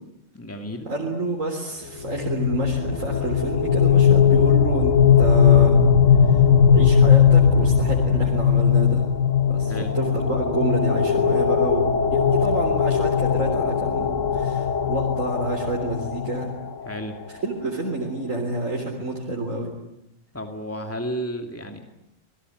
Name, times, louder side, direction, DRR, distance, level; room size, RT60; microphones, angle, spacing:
voice 1, 0.3-0.9 9.7-9.9 16.8-17.2 20.3-22.0, equal, 10° left, 4 dB, 2.6 m, -32 dB
voice 2, 0.9-5.8 6.3-6.4 6.7-9.0 9.4-16.5 17.4-19.7, right 2 dB, 85° right, 0 dB, 4.2 m, -28 dB
sound 1, 2.1-16.9, left 7 dB, 75° left, 1.8 m, -19 dB
28.5 x 20.0 x 9.5 m, 0.84 s
omnidirectional pair, 1.3 m